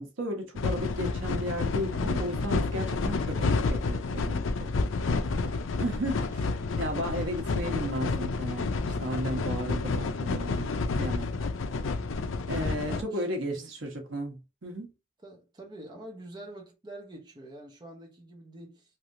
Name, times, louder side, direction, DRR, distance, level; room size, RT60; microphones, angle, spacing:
voice 1, 0.0-4.7 5.8-6.5 6.8-11.3 12.5-14.9, equal, 80° right, 1.0 m, -34 dB
sound 1, 0.6-13.0, left 3 dB, 85° left, 0.5 m, -30 dB
voice 2, 12.8-13.7 15.2-19.0, right 1 dB, 25° right, 0.8 m, -46 dB
3.2 x 2.8 x 2.6 m
head